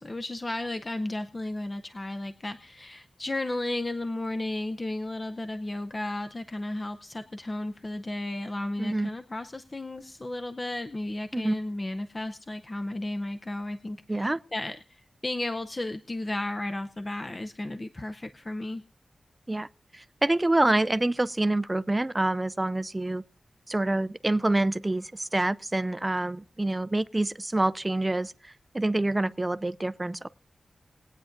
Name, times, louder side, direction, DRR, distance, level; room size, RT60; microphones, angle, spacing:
voice 1, 0.0-18.8, left 1 dB, 25° left, 0.6 m, -34 dB
voice 2, 8.8-9.1 11.3-11.6 14.1-14.4 19.5-19.7 19.9-23.2 23.7-30.3, right 2 dB, 20° right, 0.4 m, -27 dB
21.0 x 9.1 x 2.6 m
wide cardioid pair, 120°, 0 cm